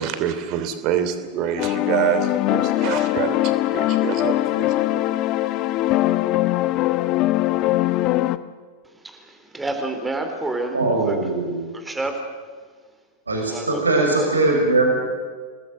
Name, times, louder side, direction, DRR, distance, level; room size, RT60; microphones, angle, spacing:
voice 1, 0.0-5.0, right 10 dB, 40° right, 10 dB, 3.1 m, -26 dB
sound 1, 1.6-8.4, left 15 dB, 40° left, 1.0 m, -21 dB
voice 2, 8.8-11.2 11.7-12.4 13.5-14.4, right 2 dB, 10° right, 5 dB, 4.0 m, -30 dB
voice 3, 10.7-11.7 13.3-15.1, right 2 dB, 75° right, 1 dB, 5.8 m, -20 dB
28.0 x 20.5 x 7.8 m, 1.5 s
figure-of-eight pair, 90°, 0 cm